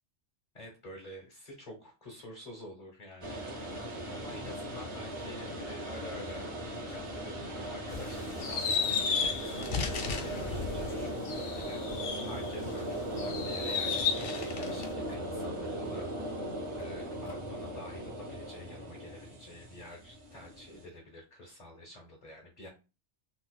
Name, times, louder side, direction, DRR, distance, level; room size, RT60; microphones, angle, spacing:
voice 1, 0.5-3.7 4.1-11.8 12.2-16.4 16.8-22.7, left 1 dB, 40° left, -1 dB, 0.9 m, -48 dB
sound 1, 3.2-20.9, right 1 dB, 30° right, 0.8 m, -38 dB
sound 2, 7.9-12.7 13.2-14.9, left 6 dB, 55° left, 0.6 m, -34 dB
sound 3, 9.4-11.5 12.1-12.2 13.4-13.5 13.7-14.0 15.0-15.2 16.8-17.4, right 3 dB, 80° left, 1.5 m, -51 dB
4.1 x 2.4 x 2.3 m, 0.30 s
omnidirectional pair, 1.2 m